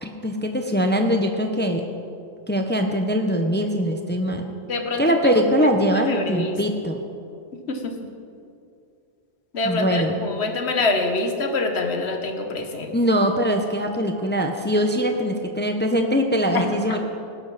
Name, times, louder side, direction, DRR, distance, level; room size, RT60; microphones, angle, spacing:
voice 1, 0.0-1.8 2.5-4.5 5.0-7.0 9.6-10.2 12.9-17.0, equal, 10° left, 4 dB, 0.7 m, -22 dB
voice 2, 4.7-5.3 5.6-6.6 7.7-8.0 9.5-12.9 16.5-16.7, left 3 dB, 90° left, 5 dB, 1.5 m, -26 dB
17.5 x 11.0 x 4.1 m, 2.5 s
omnidirectional pair, 1.1 m